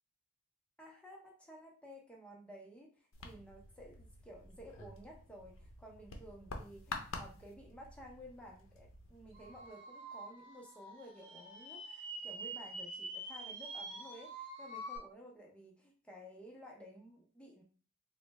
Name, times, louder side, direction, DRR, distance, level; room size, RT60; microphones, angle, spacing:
voice 1, 0.8-17.6, equal, 5° left, -1 dB, 0.6 m, -54 dB
sound 1, 3.1-9.7, left 3 dB, 70° left, 0.6 m, -49 dB
sound 2, 9.3-15.0, right 2 dB, 55° right, 1.0 m, -46 dB
3.8 x 2.2 x 3.1 m, 0.39 s
head